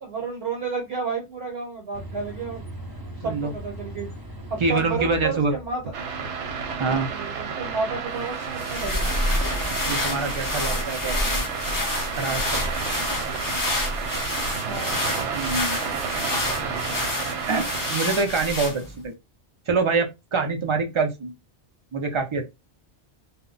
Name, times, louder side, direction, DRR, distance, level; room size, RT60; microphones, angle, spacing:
voice 1, 0.0-2.6 3.2-4.1 4.5-5.8 6.7-9.1 14.6-15.0, right 4 dB, 65° right, 1.0 m, -31 dB
sound 1, 1.9-10.0, equal, 20° right, 0.7 m, -41 dB
voice 2, 4.6-5.5 6.8-7.1 9.9-11.5 12.2-12.6 15.3-15.8 17.5-17.6 17.9-19.1 19.7-21.3 21.9-22.5, right 4 dB, 45° right, 0.4 m, -25 dB
sound 2, 5.9-18.0, right 5 dB, 85° right, 1.0 m, -31 dB
sound 3, 8.4-19.0, left 2 dB, 30° left, 0.4 m, -28 dB
2.1 x 2.1 x 3.7 m
omnidirectional pair, 1.2 m